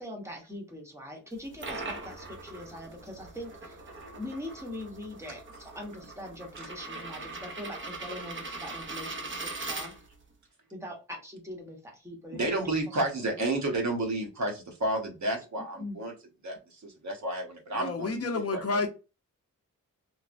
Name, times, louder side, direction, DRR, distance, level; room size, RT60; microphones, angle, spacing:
voice 1, 0.0-3.8 4.1-9.9 10.7-12.5 13.2-13.4 15.8-16.0, left 1 dB, 10° right, 0.9 m, -42 dB
sound 1, 1.3-10.3, right 3 dB, 40° right, 0.6 m, -41 dB
voice 2, 12.3-16.1 16.4-18.1 18.5-18.8, right 2 dB, 60° right, 1.0 m, -31 dB
voice 3, 17.7-18.9, left 3 dB, 50° left, 0.6 m, -30 dB
3.2 x 2.0 x 2.5 m
wide cardioid pair, 160°, 32 cm